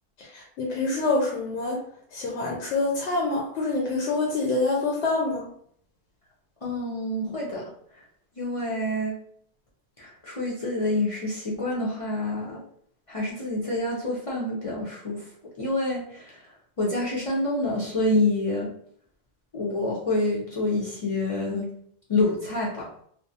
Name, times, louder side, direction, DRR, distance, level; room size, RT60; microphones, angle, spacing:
voice 1, 0.2-1.8 2.1-5.4, left 3 dB, 80° left, -2 dB, 0.9 m, -26 dB
voice 2, 6.6-7.6 8.4-9.1 10.0-12.6 13.1-15.2 15.6-16.4 16.8-18.7 19.5-21.7 22.1-22.9, left 2 dB, 45° left, -6 dB, 0.4 m, -27 dB
2.3 x 2.0 x 2.7 m, 0.63 s
omnidirectional pair, 1.1 m